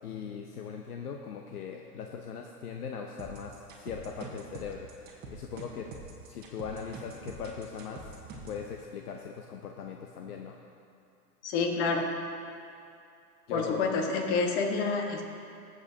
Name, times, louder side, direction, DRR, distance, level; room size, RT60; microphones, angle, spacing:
voice 1, 0.0-3.5 3.8-4.9 5.3-5.9 6.3-8.0 8.4-10.6 13.5-14.0, left 6 dB, 70° left, 2 dB, 0.9 m, -39 dB
sound 1, 3.2-8.6, right 3 dB, 20° right, 1.3 m, -45 dB
voice 2, 11.4-12.1 13.5-15.2, left 4 dB, 45° left, 3 dB, 1.5 m, -28 dB
18.5 x 7.7 x 2.8 m, 2.5 s
hypercardioid pair, 120°, 48 cm